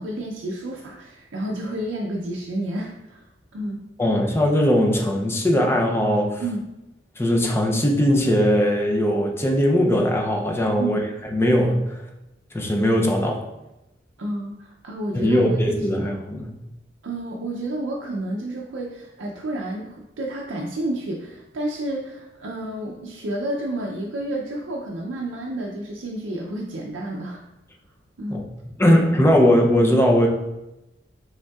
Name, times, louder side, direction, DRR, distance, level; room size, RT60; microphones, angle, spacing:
voice 1, 0.0-3.3 3.5-3.8 6.4-6.7 10.8-11.0 14.2-15.6 15.9-16.1 17.0-27.4 28.2-28.4, right 1 dB, 85° right, -2 dB, 0.5 m, -30 dB
voice 2, 4.0-6.4 7.2-11.0 11.3-12.0 12.5-13.4 15.1-16.5 28.3-28.4 28.8-30.3, equal, 15° left, 1 dB, 0.5 m, -19 dB
5.3 x 3.6 x 2.3 m, 0.94 s
head